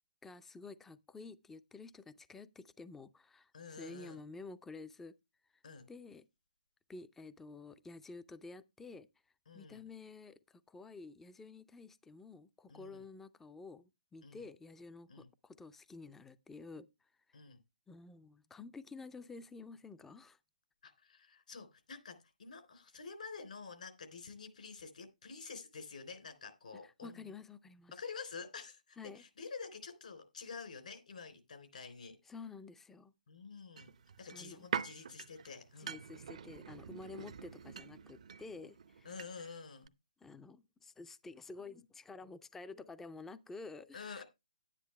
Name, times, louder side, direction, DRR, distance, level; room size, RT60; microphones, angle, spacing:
voice 1, 0.2-5.1 5.9-6.3 6.9-9.1 9.5-16.9 17.9-20.4 26.8-27.9 29.0-29.2 32.3-33.1 34.3-34.7 35.8-39.1 40.2-44.2, left 3 dB, 5° left, 0.4 m, -51 dB
voice 2, 3.5-4.2 5.6-5.9 9.5-9.9 12.7-13.0 14.2-14.4 15.1-15.3 17.3-17.6 20.8-27.3 27.9-32.2 33.3-33.9 34.2-36.0 37.2-37.3 39.0-39.9 43.9-44.2, left 5 dB, 65° left, 3.5 m, -49 dB
sound 1, 33.8-39.6 39.9-40.0, right 7 dB, 55° right, 0.6 m, -45 dB
10.5 x 9.9 x 3.2 m
figure-of-eight pair, 140°, 4 cm